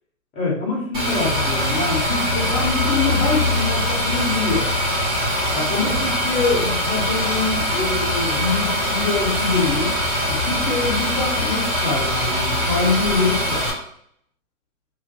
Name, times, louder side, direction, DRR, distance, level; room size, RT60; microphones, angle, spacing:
voice 1, 0.3-4.7 5.5-9.9 10.3-13.7, left 4 dB, 15° left, -3 dB, 0.7 m, -24 dB
sound 1, 0.9-13.7, left 1 dB, 15° right, 0.9 m, -22 dB
3.0 x 2.5 x 2.9 m, 0.68 s
hypercardioid pair, 130°, 42 cm